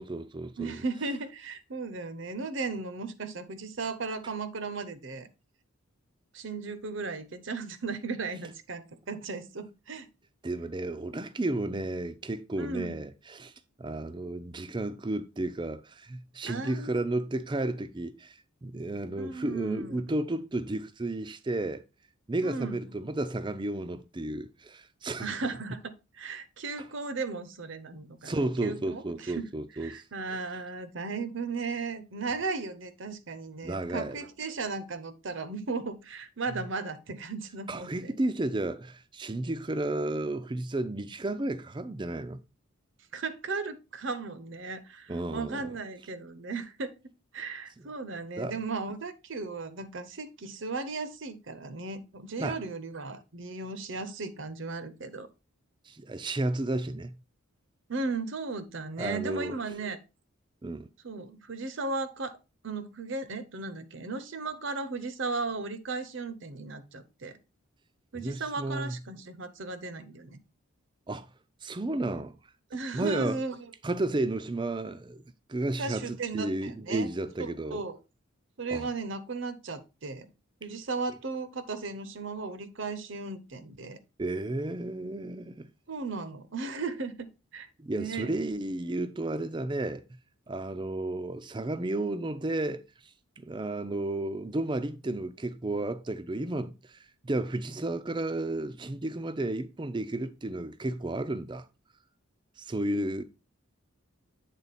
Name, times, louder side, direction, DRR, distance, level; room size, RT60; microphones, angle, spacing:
voice 1, 0.0-0.8 10.4-13.5 13.8-21.8 22.3-25.4 28.2-30.0 33.6-34.2 36.5-36.6 37.7-42.4 45.1-45.6 48.4-48.6 52.4-52.6 55.9-57.2 59.0-59.6 60.6-60.9 68.1-69.0 71.1-71.3 71.6-72.3 72.9-73.4 73.8-75.2 75.5-77.8 78.7-78.9 84.2-85.7 87.8-90.0 90.5-92.8 93.4-97.0 97.2-101.7 102.6-103.2, right 2 dB, 20° right, 0.4 m, -32 dB
voice 2, 0.6-5.3 6.3-10.1 12.6-13.0 16.5-17.0 19.2-19.9 22.4-22.9 25.2-28.3 28.6-29.5 29.8-38.2 43.1-46.9 47.3-55.3 57.9-60.0 61.0-62.4 62.6-67.3 68.1-70.4 72.7-73.7 75.8-77.1 77.4-78.0 78.6-80.3 80.6-84.0 85.9-87.3 87.5-88.3, right 3 dB, 60° right, 0.7 m, -36 dB
8.2 x 3.9 x 4.1 m
head